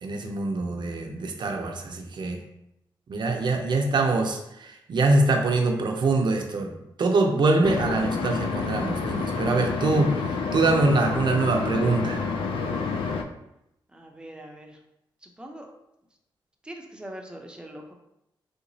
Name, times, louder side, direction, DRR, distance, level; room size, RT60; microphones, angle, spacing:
voice 1, 0.0-2.4 3.1-6.7 7.0-12.2, right 3 dB, 60° right, 2 dB, 0.6 m, -24 dB
sound 1, 7.6-13.2, left 4 dB, 90° left, 0.4 m, -29 dB
voice 2, 13.9-14.8 15.2-15.7 16.6-17.9, right 1 dB, 10° right, 2 dB, 0.6 m, -42 dB
3.4 x 2.9 x 2.7 m, 0.84 s
cardioid pair, 80°, 9 cm